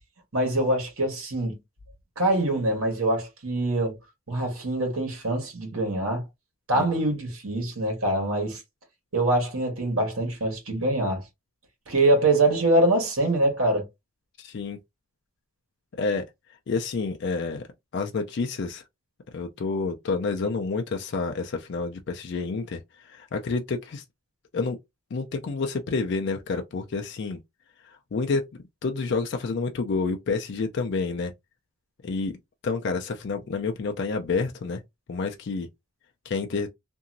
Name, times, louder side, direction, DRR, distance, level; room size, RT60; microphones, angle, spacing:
voice 1, 0.3-1.6 2.2-4.0 4.3-6.2 6.7-8.6 9.1-11.2 11.9-13.9, right 1 dB, 80° right, 1.4 m, -24 dB
voice 2, 14.4-14.8 16.0-16.2 16.7-17.6 17.9-18.8 19.3-24.0 24.5-24.8 25.1-27.4 27.8-28.4 28.8-31.3 32.0-32.4 32.6-34.8 35.1-35.7 36.2-36.7, left 4 dB, 55° left, 0.4 m, -29 dB
2.9 x 2.6 x 2.5 m
head